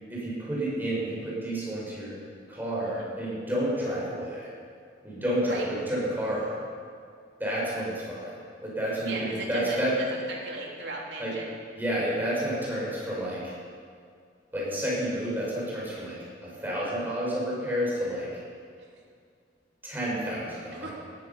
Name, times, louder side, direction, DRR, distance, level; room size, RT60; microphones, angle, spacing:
voice 1, 0.1-2.2 2.5-4.5 5.0-6.6 7.4-8.4 8.6-9.9 11.2-11.3 11.8-13.5 14.5-16.2 16.4-18.4 19.8-20.9, equal, 10° right, -6 dB, 5.5 m, -30 dB
voice 2, 9.1-9.8 10.1-11.5 20.8-20.9, right 2 dB, 65° right, -2 dB, 3.3 m, -37 dB
18.0 x 14.0 x 5.7 m, 2.2 s
head